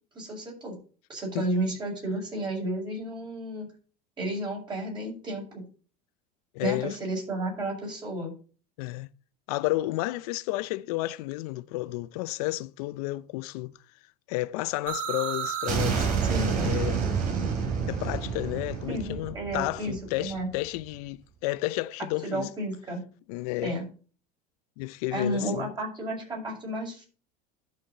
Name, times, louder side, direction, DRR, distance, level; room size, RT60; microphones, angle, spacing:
voice 1, 0.1-0.8 1.1-3.7 4.2-5.7 6.6-8.3 16.2-16.5 18.9-20.5 22.2-23.0 23.6-23.9 25.1-27.1, right 1 dB, 25° right, 5.8 m, -32 dB
voice 2, 6.5-6.9 8.8-9.1 9.5-13.7 14.3-16.1 16.5-17.0 17.9-22.5 23.3-23.7 24.8-25.7, left 18 dB, 70° left, 0.6 m, -31 dB
sound 1, 14.9-20.6, right 6 dB, 40° right, 3.2 m, -29 dB
12.5 x 5.9 x 4.1 m
supercardioid pair, 140°, 20 cm